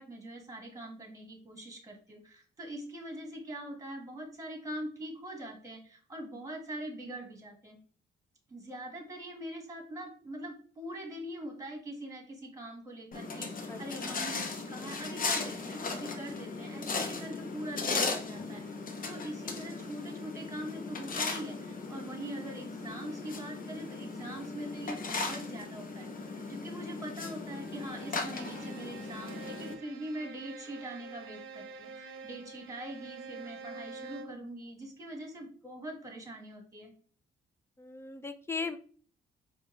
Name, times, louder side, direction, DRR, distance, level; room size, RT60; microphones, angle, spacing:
voice 1, 0.0-7.8 8.5-18.6 19.0-36.9, right 1 dB, 15° right, 3 dB, 1.4 m, -43 dB
sound 1, 13.1-29.7, left 4 dB, 45° left, 0.7 m, -37 dB
Bowed string instrument, 27.6-34.5, right 4 dB, 90° right, 0.5 m, -47 dB
voice 2, 37.8-38.8, left 4 dB, 10° left, 9 dB, 0.4 m, -37 dB
4.9 x 2.2 x 3.0 m, 0.43 s
cardioid pair, 90°, 20 cm